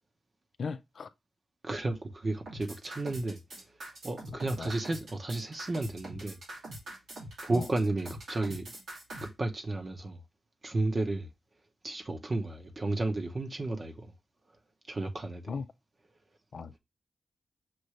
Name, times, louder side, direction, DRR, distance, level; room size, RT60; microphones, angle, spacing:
voice 1, 0.6-1.1 4.6-4.7 7.5-7.7 15.5-15.7 16.5-16.8, left 5 dB, 70° left, 0.4 m, -37 dB
voice 2, 1.6-3.6 4.0-6.4 7.4-8.7 9.2-10.2 10.6-11.3 11.8-14.1 14.9-15.6, right 2 dB, 40° right, 0.9 m, -33 dB
sound 1, 2.5-9.3, right 1 dB, 90° right, 2.5 m, -43 dB
6.2 x 2.6 x 3.1 m
cardioid pair, 70°, 0 cm